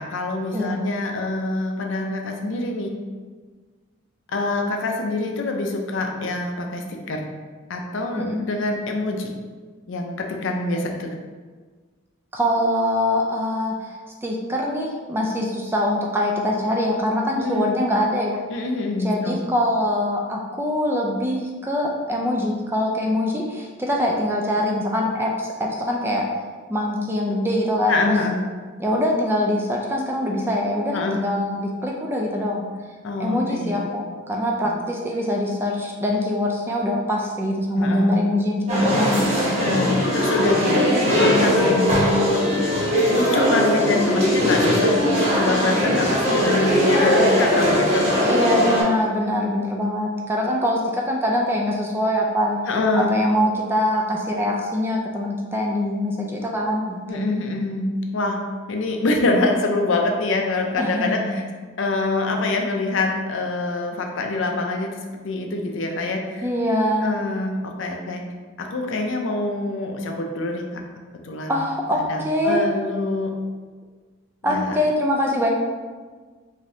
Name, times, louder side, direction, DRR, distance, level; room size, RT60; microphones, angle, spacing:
voice 1, 0.0-2.9 4.3-7.2 7.7-9.3 9.9-11.1 17.4-17.8 18.5-19.4 27.9-28.4 30.9-31.2 33.0-33.8 34.6-34.8 37.8-38.2 39.3-42.5 43.1-48.0 52.7-53.1 57.1-57.9 58.1-58.4 58.7-61.4 61.8-65.0 65.2-66.5 67.0-68.2 68.6-70.8 71.2-71.6 71.9-73.3 74.5-74.8, left 2 dB, 65° left, 2 dB, 0.5 m, -25 dB
voice 2, 0.5-0.9 8.1-8.4 12.3-18.4 19.0-26.4 26.7-28.2 28.8-32.7 33.2-39.6 48.2-52.6 53.1-57.3 60.8-61.4 66.4-67.2 71.5-72.7 74.4-75.5, left 1 dB, 10° right, -1 dB, 0.3 m, -23 dB
sound 1, 38.7-48.8, equal, 30° right, 0.9 m, -20 dB
5.0 x 2.7 x 2.7 m, 1.5 s
head